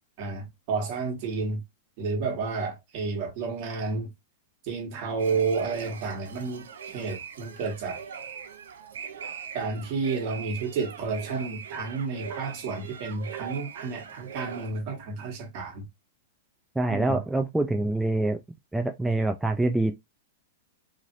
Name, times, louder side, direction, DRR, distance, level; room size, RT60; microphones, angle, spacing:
voice 1, 0.2-1.6 2.0-4.1 4.7-6.7 6.9-8.0 9.5-15.8 16.9-17.2, right 4 dB, 50° right, 1.3 m, -31 dB
sound 1, 5.2-14.7, right 7 dB, 90° right, 0.6 m, -41 dB
voice 2, 16.8-18.4 18.7-19.9, right 2 dB, 5° right, 0.3 m, -25 dB
3.1 x 2.5 x 2.7 m
hypercardioid pair, 145°, 0 cm